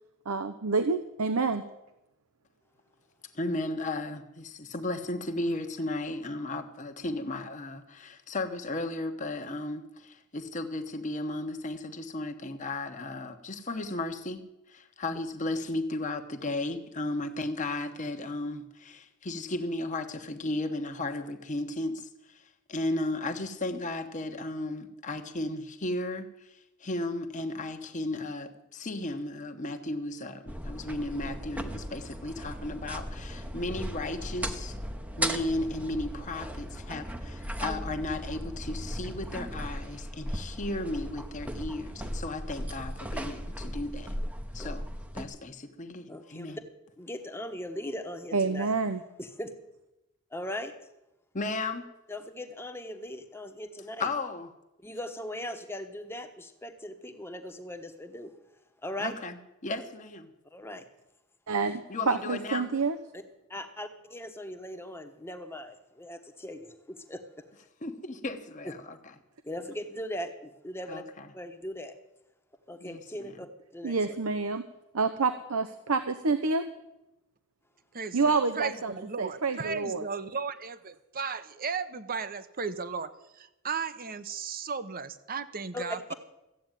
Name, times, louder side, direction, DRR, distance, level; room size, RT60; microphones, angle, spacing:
voice 1, 0.3-1.6 48.3-49.0 61.5-63.0 73.8-74.6 74.9-76.6 78.1-80.0, right 4 dB, 75° right, 9 dB, 0.8 m, -28 dB
voice 2, 3.3-34.8 35.2-44.2 44.5-44.8 45.1-46.6 51.3-51.9 54.0-54.5 59.0-60.3 61.9-62.7 67.8-69.0 70.9-71.3 72.8-73.3, left 2 dB, 35° left, 6 dB, 1.1 m, -35 dB
sound 1, 30.5-45.2, equal, 5° right, 0.9 m, -37 dB
voice 3, 46.1-46.6 47.0-48.7 49.2-49.5 50.3-50.7 52.1-54.1 54.8-58.3 58.8-59.1 60.5-60.9 63.1-63.2 63.5-67.4 69.4-71.0 71.3-71.9 72.7-74.2 85.7-85.8, left 1 dB, 10° left, 7 dB, 1.1 m, -39 dB
voice 4, 77.9-86.1, right 5 dB, 40° right, 13 dB, 0.9 m, -35 dB
14.5 x 8.5 x 9.1 m, 0.94 s
head